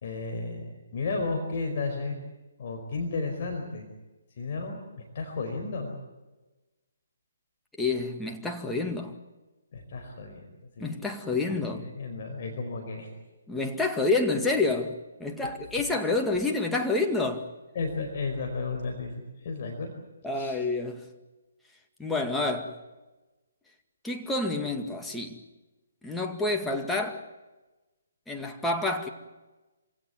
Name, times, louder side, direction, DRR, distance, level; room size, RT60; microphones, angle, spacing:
voice 1, 0.0-2.2 2.6-3.9 4.4-5.9 9.7-10.9 11.5-13.1 17.7-19.9 20.4-20.6, left 3 dB, 45° left, 4.8 m, -33 dB
voice 2, 7.8-9.2 10.8-11.9 13.5-17.5 20.2-21.0 22.0-22.8 24.0-25.4 26.0-27.2 28.3-29.1, left 3 dB, 5° left, 2.1 m, -28 dB
26.0 x 17.0 x 9.6 m
figure-of-eight pair, 135°, 0 cm